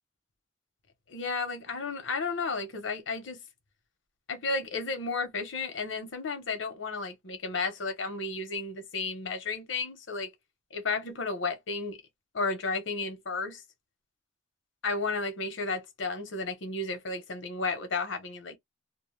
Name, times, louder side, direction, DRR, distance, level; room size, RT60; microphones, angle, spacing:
voice 1, 1.1-3.4 4.3-10.3 10.7-12.0 12.3-13.6 14.8-18.6, left 3 dB, 85° left, 0.9 m, -33 dB
2.3 x 2.1 x 3.1 m
head